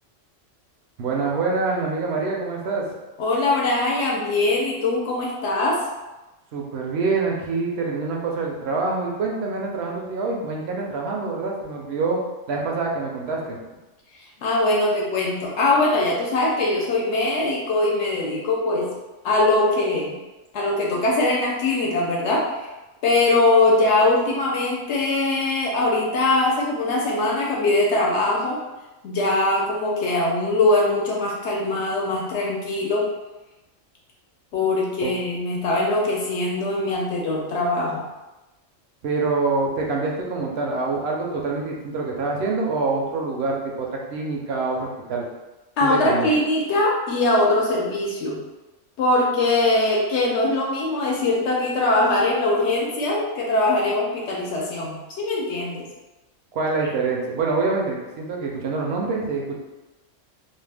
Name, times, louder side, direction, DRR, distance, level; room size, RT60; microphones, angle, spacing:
voice 1, 1.0-2.9 6.5-12.2 12.5-13.6 35.0-35.1 39.0-45.3 45.8-46.3 56.5-59.6, right 3 dB, 65° right, -1 dB, 0.7 m, -25 dB
voice 2, 3.2-5.9 14.1-18.9 19.2-20.1 20.5-22.7 23.0-28.6 29.0-33.1 34.5-38.1 45.8-48.4 49.0-55.8, left 2 dB, 65° left, -3 dB, 0.8 m, -22 dB
2.6 x 2.1 x 3.3 m, 1.1 s
omnidirectional pair, 1.3 m